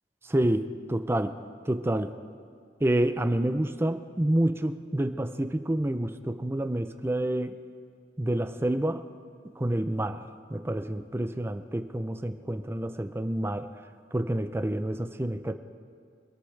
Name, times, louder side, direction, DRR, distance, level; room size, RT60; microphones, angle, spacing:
voice 1, 0.3-1.3 1.7-2.1 2.8-7.5 8.2-9.0 9.6-10.2 10.5-13.7 14.1-15.5, right 1 dB, 15° right, 9 dB, 0.5 m, -28 dB
25.0 x 14.5 x 3.3 m, 2.1 s
head